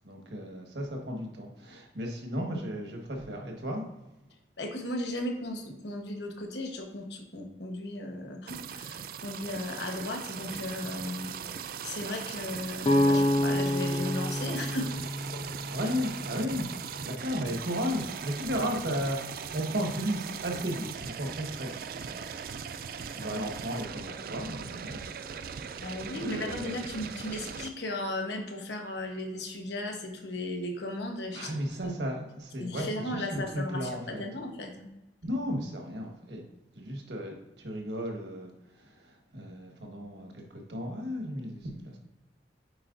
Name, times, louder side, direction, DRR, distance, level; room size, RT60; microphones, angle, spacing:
voice 1, 0.0-3.8 15.7-16.7 17.0-25.0 25.2-27.0 31.3-34.2 35.2-36.4 36.7-42.0, equal, 75° right, 1 dB, 1.4 m, -35 dB
voice 2, 4.6-11.3 11.8-14.9 15.3-15.4 15.8-15.9 23.0-23.4 25.8-31.9 32.6-34.9, left 1 dB, 75° left, 4 dB, 1.0 m, -36 dB
sound 1, 8.5-27.7, right 7 dB, 55° right, 0.3 m, -39 dB
sound 2, 12.8-16.6, left 1 dB, 30° left, 0.4 m, -28 dB
8.5 x 4.5 x 2.5 m, 0.98 s
head